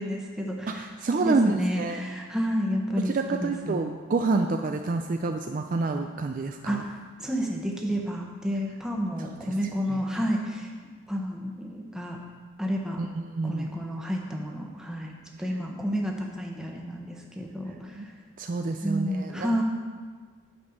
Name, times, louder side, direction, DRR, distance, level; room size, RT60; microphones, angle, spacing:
voice 1, 0.0-0.9 1.2-3.8 6.6-6.9 7.2-10.7 11.1-12.2 12.6-13.0 13.4-15.1 15.4-17.9 18.8-19.6, equal, 5° right, 0 dB, 1.0 m, -30 dB
voice 2, 0.7-2.0 3.0-6.8 9.9-10.0 13.0-13.7 18.0-18.1 18.4-19.6, right 3 dB, 40° right, 5 dB, 0.4 m, -28 dB
9.7 x 5.3 x 6.5 m, 1.5 s
head